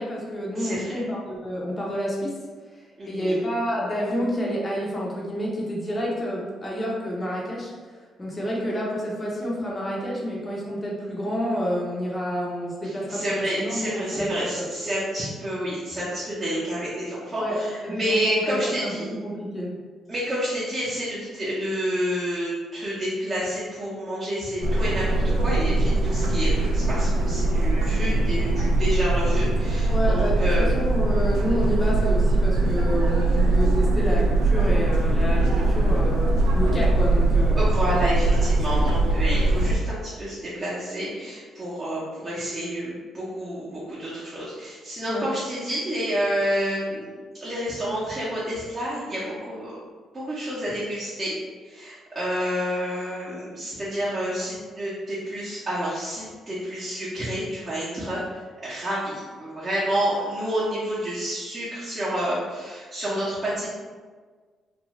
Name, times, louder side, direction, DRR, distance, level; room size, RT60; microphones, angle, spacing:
voice 1, 0.0-2.3 3.1-7.7 8.2-14.7 17.4-19.7 29.9-37.6 45.1-45.3, equal, 25° left, -4 dB, 0.6 m, -29 dB
voice 2, 0.6-1.0 3.0-3.4 13.1-19.1 20.1-30.7 37.6-47.1 47.4-49.8 50.1-51.4 51.6-58.2 58.6-63.7, equal, 30° right, -10 dB, 0.8 m, -29 dB
sound 1, 24.6-39.8, right 2 dB, 85° right, 0.3 m, -21 dB
2.5 x 2.3 x 3.0 m, 1.5 s
cardioid pair, 90°, 0 cm